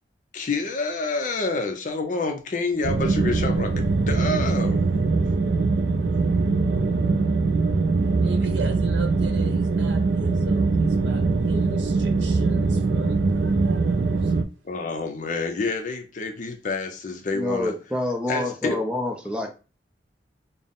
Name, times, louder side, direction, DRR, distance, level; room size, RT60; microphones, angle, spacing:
voice 1, 0.3-4.9 14.6-17.7 18.3-18.8, left 3 dB, 45° left, 0.5 m, -28 dB
sound 1, 2.8-14.4, right 3 dB, 65° right, 0.4 m, -22 dB
voice 2, 8.2-14.3, right 3 dB, 90° right, 0.9 m, -38 dB
voice 3, 17.3-19.5, left 2 dB, 5° right, 0.5 m, -27 dB
3.9 x 2.0 x 3.6 m
head